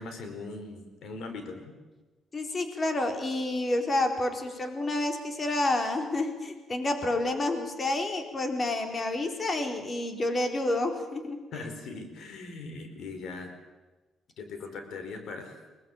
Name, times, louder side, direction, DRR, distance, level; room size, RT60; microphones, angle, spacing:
voice 1, 0.0-1.7 11.5-13.6 14.4-15.6, left 3 dB, 75° left, 6 dB, 4.7 m, -40 dB
voice 2, 2.3-11.4, left 2 dB, 35° left, 5 dB, 3.9 m, -29 dB
23.5 x 19.0 x 9.0 m, 1.2 s
cardioid pair, 90°, 0 cm